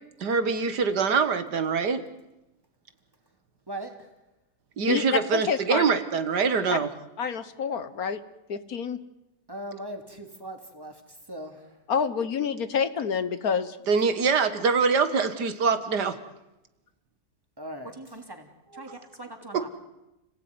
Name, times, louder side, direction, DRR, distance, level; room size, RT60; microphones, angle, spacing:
voice 1, 0.2-2.0 4.8-6.9 13.9-16.1 19.5-19.6, right 5 dB, 85° right, 10 dB, 2.3 m, -24 dB
voice 2, 3.7-4.1 9.5-11.8 17.6-19.7, right 1 dB, 15° right, 5 dB, 3.1 m, -40 dB
voice 3, 4.9-5.8 6.7-6.8 7.2-8.2 8.5-9.0 11.9-13.8, left 6 dB, 65° left, 13 dB, 1.6 m, -28 dB
30.0 x 17.5 x 9.7 m, 0.96 s
omnidirectional pair, 1.7 m